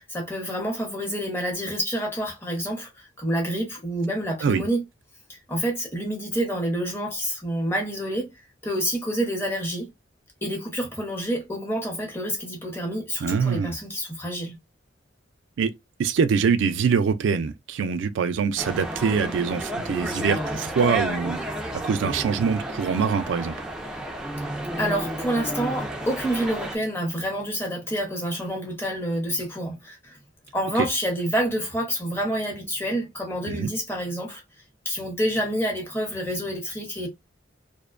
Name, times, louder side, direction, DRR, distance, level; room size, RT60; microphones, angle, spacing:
voice 1, 0.0-4.8 5.3-8.3 8.6-9.9 10.4-14.6 24.8-30.2 30.5-34.4 34.8-37.1, right 1 dB, 15° left, 0.8 m, -28 dB
voice 2, 13.2-13.8 15.6-15.7 16.0-23.7 30.8-30.9 33.5-33.7, right 6 dB, 80° right, 0.4 m, -24 dB
sound 1, 18.6-26.8, right 1 dB, 5° right, 0.4 m, -31 dB
2.5 x 2.1 x 2.4 m
head